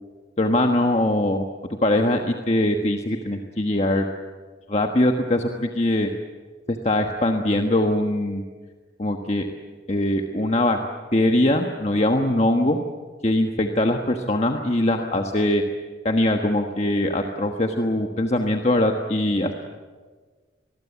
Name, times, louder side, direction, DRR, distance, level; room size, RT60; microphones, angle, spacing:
voice 1, 0.4-1.4 1.8-4.1 4.7-6.1 6.7-8.4 9.0-9.5 9.9-10.8 11.1-12.8 13.2-15.6 16.0-19.5, left 1 dB, 35° left, 4 dB, 1.3 m, -22 dB
25.5 x 20.5 x 8.3 m, 1.4 s
head